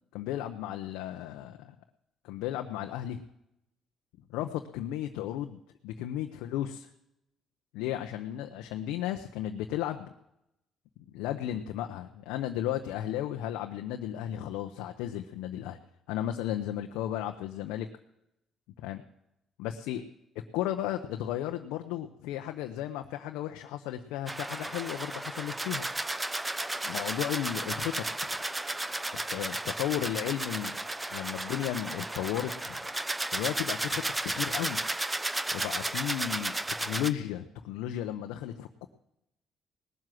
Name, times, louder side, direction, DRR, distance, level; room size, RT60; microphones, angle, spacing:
voice 1, 0.1-1.7 2.2-3.2 4.3-5.6 5.8-6.9 7.7-10.1 11.1-15.8 16.1-17.9 18.8-19.0 19.6-20.0 20.5-25.9 26.8-28.0 29.3-30.8 31.1-32.8 33.3-34.8 35.5-38.9, left 12 dB, 90° left, 5 dB, 0.8 m, -34 dB
sound 1, 24.3-37.1, right 2 dB, 15° right, 0.9 m, -34 dB
18.5 x 7.6 x 7.7 m, 0.84 s
supercardioid pair, 75°, 0 cm